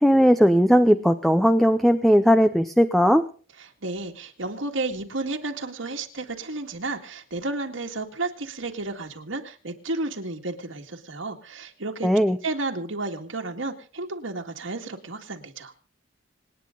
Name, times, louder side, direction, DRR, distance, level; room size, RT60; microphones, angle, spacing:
voice 1, 0.0-3.2 12.0-12.4, equal, ahead, 10 dB, 0.6 m, -18 dB
voice 2, 3.6-12.1 12.4-15.7, right 2 dB, 80° right, 3 dB, 2.0 m, -32 dB
27.0 x 9.6 x 3.9 m, 0.40 s
head